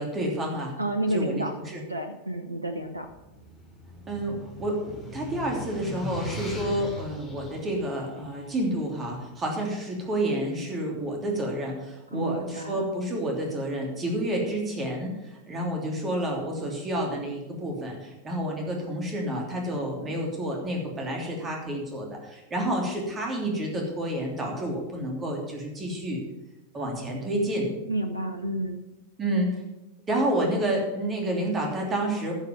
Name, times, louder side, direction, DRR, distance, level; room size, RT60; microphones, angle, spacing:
voice 1, 0.0-0.7 1.1-1.8 4.1-26.2 26.7-27.7 29.2-29.6 30.1-32.3, right 1 dB, 20° right, 0 dB, 3.1 m, -29 dB
voice 2, 0.8-1.6 1.9-3.1 12.1-12.9 27.9-28.8, right 1 dB, 85° right, 7 dB, 0.8 m, -30 dB
sound 1, 2.9-9.2, left 2 dB, 15° left, 3.7 m, -39 dB
12.0 x 6.7 x 6.9 m, 1.0 s
figure-of-eight pair, 90°, 0 cm